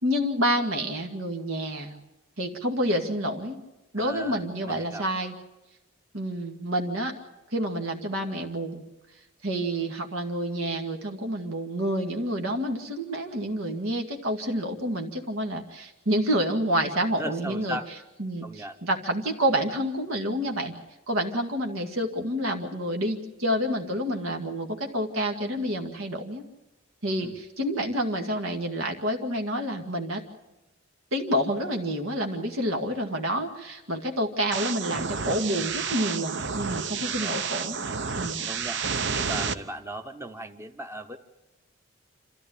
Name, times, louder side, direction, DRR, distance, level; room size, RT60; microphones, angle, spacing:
voice 1, 0.0-1.9 2.4-3.6 3.9-5.3 6.1-7.1 7.5-8.8 9.4-17.8 18.2-20.7 21.1-26.4 27.0-30.2 31.1-37.8 38.1-38.4, equal, 85° right, 3 dB, 2.1 m, -28 dB
voice 2, 4.0-5.0 17.2-17.9 18.4-18.8 27.2-27.4 37.0-37.4 38.5-41.2, right 1 dB, 15° right, 7 dB, 0.8 m, -37 dB
sound 1, 34.5-39.5, right 5 dB, 60° right, 0.8 m, -30 dB
27.0 x 14.5 x 8.5 m, 1.0 s
head